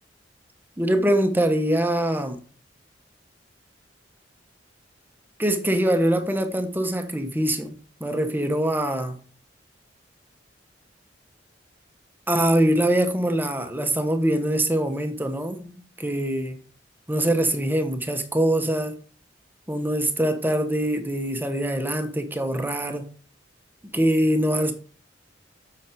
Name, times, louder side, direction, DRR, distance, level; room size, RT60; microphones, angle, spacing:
voice 1, 0.8-2.4 5.4-9.2 12.3-16.6 17.1-19.0 19.7-23.1 23.9-24.7, right 1 dB, 10° right, 1.2 m, -23 dB
7.5 x 7.1 x 5.2 m
head